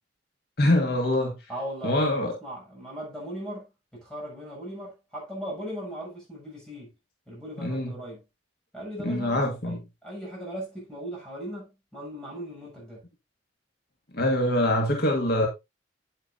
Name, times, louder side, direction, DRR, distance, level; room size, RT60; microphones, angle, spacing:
voice 1, 0.6-1.4 1.8-2.3 7.6-7.9 9.0-9.8 14.1-15.5, left 1 dB, 55° left, 1.9 m, -24 dB
voice 2, 1.5-3.7 3.9-6.9 7.3-8.2 8.7-13.0, equal, 5° left, 6.9 m, -38 dB
9.2 x 9.1 x 2.7 m
head